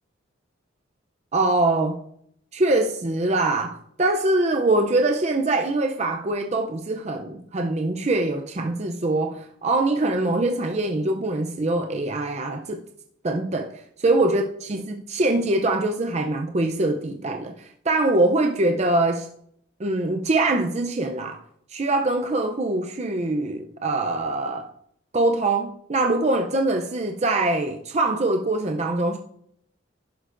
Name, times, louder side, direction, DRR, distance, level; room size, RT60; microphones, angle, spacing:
voice 1, 1.3-2.0 2.5-12.8 13.2-19.3 19.8-21.4 21.7-24.7 25.1-29.2, right 2 dB, 35° right, 0.5 m, -23 dB
11.5 x 11.0 x 2.6 m
head